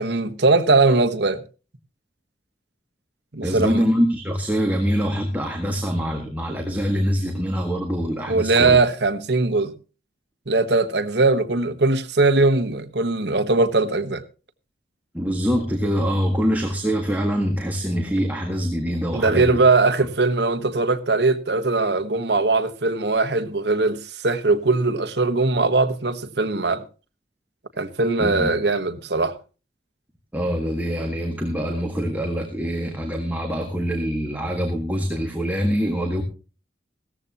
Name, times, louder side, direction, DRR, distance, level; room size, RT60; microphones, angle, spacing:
voice 1, 0.0-1.4 3.3-3.8 8.3-9.7 10.5-14.2 19.1-26.8 27.8-29.3, right 3 dB, 65° right, 1.2 m, -20 dB
voice 2, 3.4-8.8 15.1-19.6 28.2-28.5 30.3-36.2, equal, 10° right, 1.7 m, -24 dB
16.5 x 14.0 x 2.9 m
head